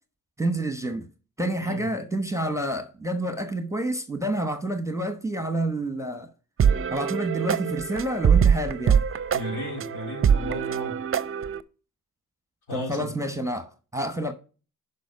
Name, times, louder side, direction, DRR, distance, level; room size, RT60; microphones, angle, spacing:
voice 1, 0.4-1.0 1.4-6.3 6.9-9.0 12.7-14.3, right 1 dB, 5° right, 1.0 m, -28 dB
sound 1, 6.6-11.6, right 7 dB, 35° right, 0.6 m, -23 dB
voice 2, 9.3-11.0 12.7-13.1, left 1 dB, 70° left, 3.8 m, -35 dB
6.2 x 5.4 x 6.8 m
supercardioid pair, 55°, 40 cm